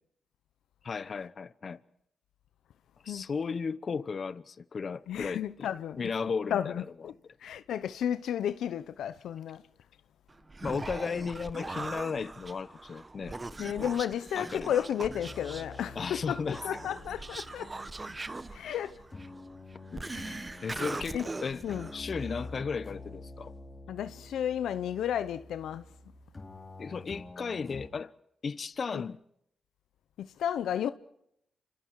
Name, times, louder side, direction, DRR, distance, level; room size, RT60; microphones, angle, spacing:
voice 1, 0.8-1.8 3.0-5.7 6.0-6.8 10.6-13.9 14.4-14.7 15.9-16.9 19.9-20.1 20.6-21.6 21.9-23.5 26.8-28.1 28.4-29.2, left 5 dB, 55° left, 1.0 m, -35 dB
voice 2, 5.1-6.0 6.5-7.1 7.4-9.6 13.6-17.7 18.5-18.9 20.1-20.6 21.1-21.3 21.6-21.9 23.9-25.8 28.9-29.0 30.2-30.9, left 9 dB, 85° left, 0.9 m, -33 dB
Human voice, 10.3-22.5, right 2 dB, 30° right, 1.2 m, -41 dB
sound 1, 15.0-27.9, left 2 dB, 35° left, 4.4 m, -47 dB
29.0 x 26.0 x 4.8 m
cardioid pair, 65°, 0 cm